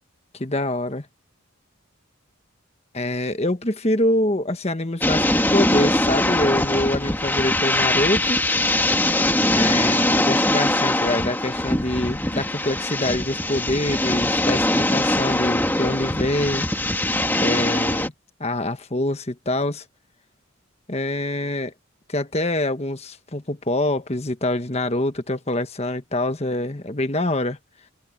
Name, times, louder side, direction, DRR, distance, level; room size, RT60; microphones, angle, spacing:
voice 1, 0.4-1.1 2.9-8.4 9.4-16.7 17.3-18.1 18.4-19.8 20.9-21.7 22.1-27.6, left 1 dB, 30° left, 1.3 m, -25 dB
sound 1, 5.0-18.1, left 1 dB, 10° left, 1.9 m, -22 dB
head